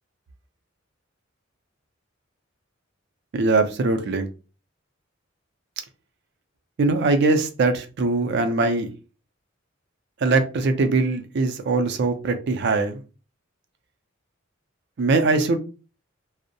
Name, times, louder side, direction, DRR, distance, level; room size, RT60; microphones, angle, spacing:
voice 1, 3.3-4.3 6.8-8.9 10.2-13.0 15.0-15.6, right 3 dB, 60° right, 0.4 m, -21 dB
2.5 x 2.0 x 2.6 m
head